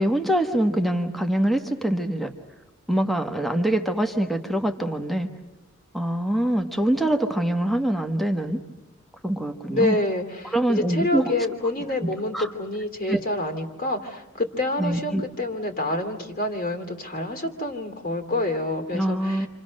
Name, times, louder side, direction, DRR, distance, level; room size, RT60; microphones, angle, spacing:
voice 1, 0.0-2.3 2.9-5.3 5.9-8.6 9.2-10.0 10.5-11.3 12.3-12.5 13.1-13.2 14.8-15.2 18.9-19.5, right 1 dB, ahead, 5 dB, 1.3 m, -24 dB
voice 2, 9.7-19.5, left 1 dB, 45° left, 4 dB, 2.7 m, -27 dB
28.5 x 26.5 x 6.5 m, 1.0 s
head